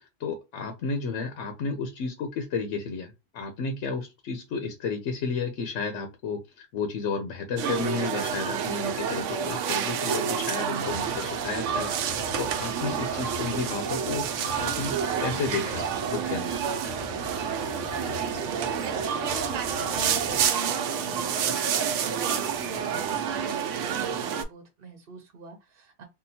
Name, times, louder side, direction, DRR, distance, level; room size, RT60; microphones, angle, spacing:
voice 1, 0.2-16.6, left 4 dB, 90° left, 1.0 m, -32 dB
sound 1, 7.6-24.4, right 7 dB, 90° right, 0.9 m, -29 dB
sound 2, 10.9-20.5, left 6 dB, 50° left, 0.4 m, -44 dB
voice 2, 17.9-26.0, right 4 dB, 60° right, 0.8 m, -40 dB
3.7 x 2.2 x 2.7 m
omnidirectional pair, 1.2 m